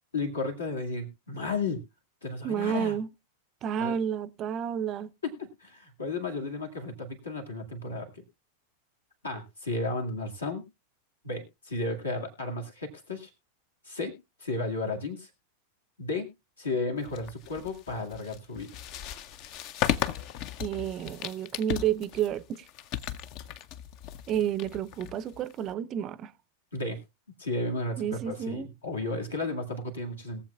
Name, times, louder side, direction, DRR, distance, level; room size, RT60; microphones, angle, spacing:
voice 1, 0.1-1.8 2.2-3.0 3.8-4.0 5.2-8.2 9.2-10.7 11.2-13.3 13.8-15.3 16.0-16.3 16.6-18.7 26.7-27.0 27.4-30.4, left 2 dB, 75° left, 2.0 m, -33 dB
voice 2, 2.4-3.1 3.6-5.1 20.6-22.7 24.3-26.3 28.0-28.7, right 9 dB, 35° right, 0.5 m, -30 dB
sound 1, 17.1-25.7, left 10 dB, 40° left, 0.5 m, -36 dB
21.0 x 7.4 x 2.3 m
figure-of-eight pair, 90°, 0 cm